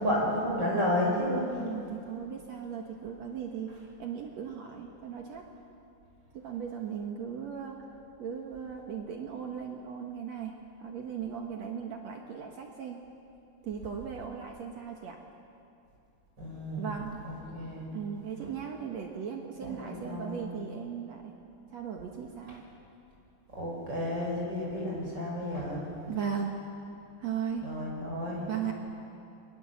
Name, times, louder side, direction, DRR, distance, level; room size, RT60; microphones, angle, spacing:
voice 1, 0.0-1.5 16.4-16.9 17.2-17.8 19.6-20.4 23.6-25.8 27.6-28.5, left 1 dB, 30° right, -3 dB, 6.8 m, -31 dB
voice 2, 1.6-5.5 6.3-7.9 8.2-13.0 13.6-15.2 16.8-17.2 17.9-21.3 21.7-22.6 26.1-26.6 27.2-27.6 28.5-28.7, right 7 dB, 60° right, 2 dB, 2.5 m, -37 dB
28.5 x 23.5 x 7.2 m, 2.7 s
omnidirectional pair, 3.6 m